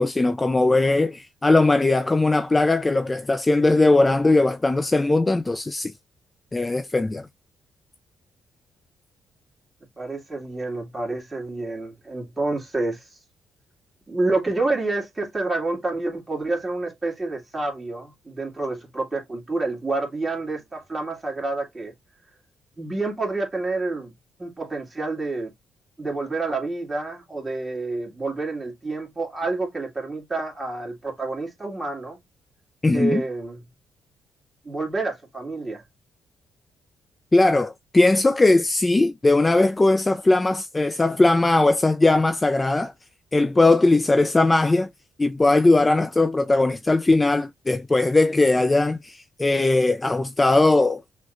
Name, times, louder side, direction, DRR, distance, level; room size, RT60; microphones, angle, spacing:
voice 1, 0.0-5.9 6.5-7.3 32.8-33.2 37.3-42.9 43.3-44.9 45.2-51.0, left 2 dB, 20° left, 0.3 m, -19 dB
voice 2, 10.0-13.0 14.1-21.9 22.8-24.1 24.4-25.5 26.0-32.2 32.9-33.6 34.6-35.8, right 3 dB, 15° right, 1.9 m, -28 dB
6.0 x 2.2 x 2.4 m
cardioid pair, 90°, 0 cm